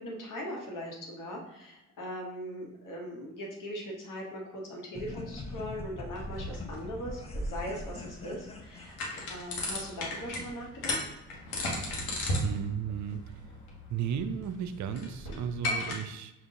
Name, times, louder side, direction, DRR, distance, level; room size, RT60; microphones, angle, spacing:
voice 1, 0.0-9.0 9.3-11.0, equal, 55° left, -1 dB, 1.2 m, -40 dB
sound 1, 4.9-9.7, left 1 dB, 15° left, 0.7 m, -41 dB
sound 2, 6.1-15.9, left 1 dB, 75° left, 1.1 m, -36 dB
voice 2, 12.4-13.3 13.9-16.3, right 8 dB, 50° right, 10 dB, 0.5 m, -34 dB
5.1 x 2.5 x 3.7 m, 0.90 s
hypercardioid pair, 45°, 38 cm